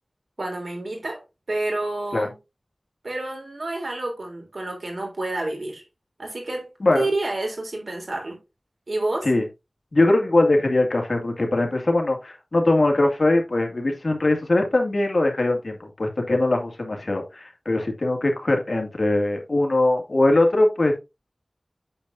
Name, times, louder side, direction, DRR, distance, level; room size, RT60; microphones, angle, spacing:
voice 1, 0.4-1.2 1.5-2.4 3.0-5.8 6.2-8.4 8.9-9.3, right 2 dB, 85° right, 3.2 m, -29 dB
voice 2, 9.9-21.0, left 2 dB, 70° left, 2.0 m, -21 dB
8.6 x 6.8 x 2.6 m
wide cardioid pair, 55°, 0 cm